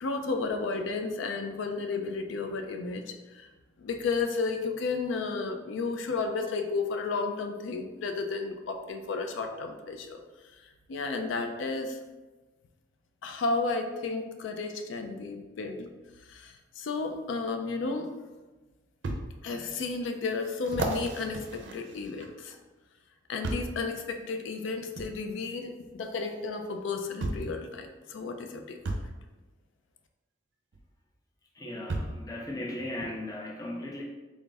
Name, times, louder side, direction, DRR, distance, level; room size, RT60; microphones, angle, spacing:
voice 1, 0.0-3.5 3.8-10.2 10.9-12.0 13.2-15.9 16.3-18.1 19.4-22.6 23.3-29.0, left 4 dB, 75° left, 5 dB, 0.4 m, -33 dB
sound 1, 17.9-18.0 19.0-19.2 19.8-19.9 20.6-22.5 23.4-23.8 25.0-25.1 26.4-26.5 27.2-27.5 28.8-29.1 30.7-30.8 31.9-32.2 33.0-33.1, right 2 dB, 65° right, 0.5 m, -34 dB
voice 2, 31.6-34.0, left 1 dB, 20° left, -1 dB, 0.4 m, -37 dB
3.6 x 2.4 x 3.9 m, 1.2 s
head